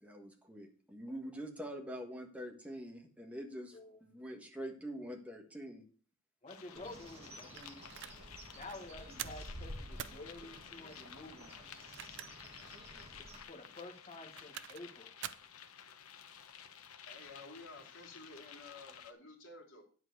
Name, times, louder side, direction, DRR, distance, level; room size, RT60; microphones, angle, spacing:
voice 1, 0.0-5.8, equal, 5° right, 3 dB, 1.5 m, -45 dB
voice 2, 6.4-7.8 8.5-11.8 13.5-15.1, left 2 dB, 30° left, 4 dB, 1.6 m, -50 dB
sound 1, 6.5-19.1, left 8 dB, 80° left, 1.0 m, -54 dB
Bird, 6.8-13.4, equal, 25° right, 1.9 m, -51 dB
sound 2, 7.6-8.2 8.6-8.8 9.2-9.5 10.0-10.2 11.7-12.5 12.9-13.0 14.1-14.9 15.2-15.5, right 11 dB, 55° right, 0.5 m, -45 dB
voice 3, 17.1-19.8, left 2 dB, 55° left, -2 dB, 2.9 m, -52 dB
10.5 x 4.6 x 8.0 m, 0.42 s
head